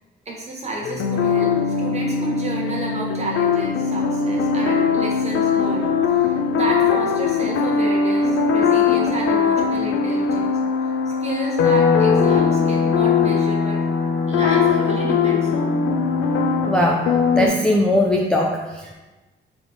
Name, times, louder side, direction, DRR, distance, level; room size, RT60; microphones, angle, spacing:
voice 1, 0.2-13.8 14.3-15.8, right 2 dB, 35° right, -2 dB, 1.1 m, -31 dB
sound 1, 0.8-17.5, left 5 dB, 85° left, 0.5 m, -20 dB
voice 2, 16.7-17.1 17.3-18.9, left 1 dB, 5° left, -1 dB, 0.3 m, -19 dB
3.4 x 3.0 x 3.9 m, 1.1 s
cardioid pair, 90°, 20 cm